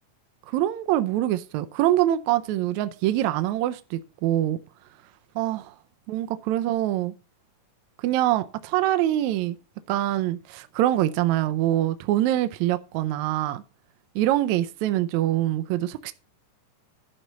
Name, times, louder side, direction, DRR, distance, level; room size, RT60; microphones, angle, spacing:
voice 1, 0.5-4.6 5.3-5.7 6.1-7.1 8.0-9.6 9.9-13.6 14.1-16.1, right 13 dB, 75° right, 1.8 m, -24 dB
11.0 x 4.2 x 6.7 m
omnidirectional pair, 3.6 m